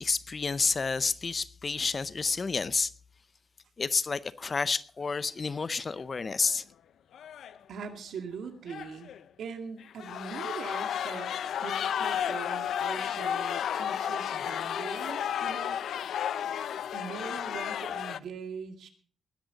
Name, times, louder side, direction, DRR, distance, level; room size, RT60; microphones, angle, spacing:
voice 1, 0.0-2.9 3.8-6.6, left 4 dB, 35° left, 0.5 m, -30 dB
sound 1, 6.0-6.2 6.4-6.5 7.1-7.6 8.7-9.2 9.8-18.2, left 9 dB, 85° left, 0.5 m, -32 dB
voice 2, 7.7-9.1 9.4-11.3 11.6-15.8 16.9-18.9, right 6 dB, 80° right, 2.2 m, -41 dB
19.5 x 10.5 x 4.0 m
wide cardioid pair, 140°, 0 cm